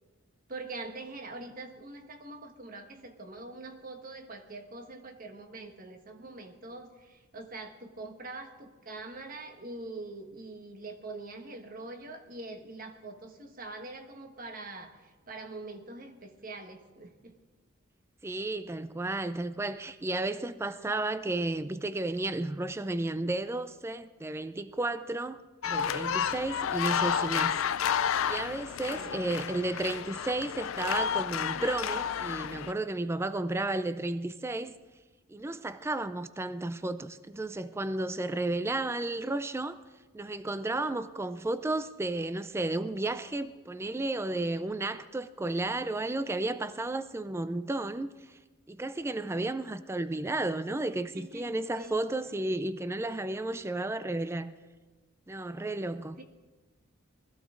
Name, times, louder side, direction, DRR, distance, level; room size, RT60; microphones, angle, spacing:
voice 1, 0.5-17.3 28.9-29.1 51.0-52.0 56.2-56.3, right 2 dB, 45° right, 1.3 m, -44 dB
voice 2, 18.2-27.9 28.3-34.7 35.3-39.8 40.1-48.4 48.7-54.5 55.3-56.2, right 2 dB, 15° right, 0.4 m, -33 dB
sound 1, 25.6-32.7, left 8 dB, 85° left, 0.5 m, -31 dB
20.5 x 14.5 x 3.8 m
head